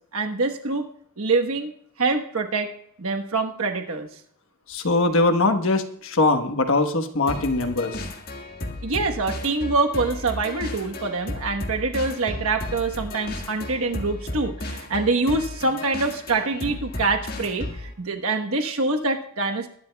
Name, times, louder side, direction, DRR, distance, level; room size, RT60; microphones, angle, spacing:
voice 1, 0.1-0.9 1.2-1.7 2.0-2.7 3.0-4.1 8.8-19.7, right 3 dB, 80° right, 4 dB, 1.2 m, -25 dB
voice 2, 4.7-8.1, left 2 dB, 70° left, 7 dB, 1.2 m, -22 dB
sound 1, 7.3-17.9, left 1 dB, 45° left, 1.7 m, -34 dB
21.5 x 11.0 x 2.3 m, 0.67 s
head